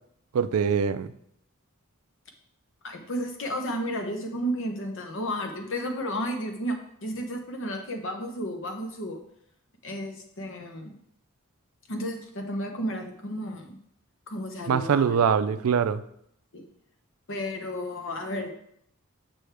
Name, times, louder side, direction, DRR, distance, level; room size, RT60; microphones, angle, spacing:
voice 1, 0.3-1.1 14.7-16.0, right 7 dB, 80° right, 0.4 m, -23 dB
voice 2, 2.8-9.2 9.8-10.9 11.9-13.8 14.3-15.3 16.5-16.7 17.3-18.5, equal, 65° left, 1.0 m, -32 dB
6.3 x 6.1 x 3.4 m
head